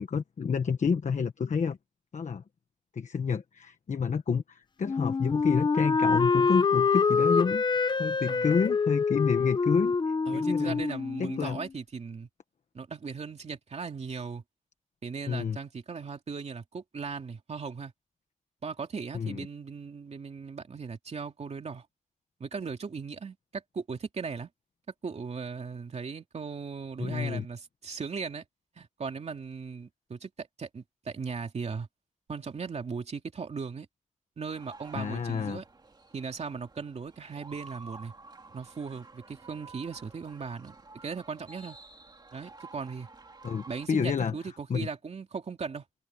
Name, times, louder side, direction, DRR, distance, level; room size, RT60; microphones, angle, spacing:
voice 1, 0.0-1.8 2.1-2.4 2.9-7.6 7.9-10.0 10.3-10.8 11.2-11.6 15.3-15.6 19.1-19.5 27.0-27.4 34.9-35.6 43.4-44.4 44.7-44.9, left 6 dB, 60° left, 1.2 m, -29 dB
Wind instrument woodwind instrument, 4.9-11.7, left 5 dB, 35° left, 0.7 m, -26 dB
voice 2, 10.3-12.3 12.7-14.4 15.0-17.9 18.6-21.8 22.4-24.5 25.0-28.4 28.8-31.9 32.3-33.9 34.4-35.6 36.1-38.1 38.5-40.8 41.0-41.8 42.3-43.1 43.7-45.8, right 5 dB, 50° right, 2.6 m, -38 dB
sound 1, 34.5-43.9, right 3 dB, 30° right, 2.6 m, -51 dB
wide cardioid pair, 170°, 14 cm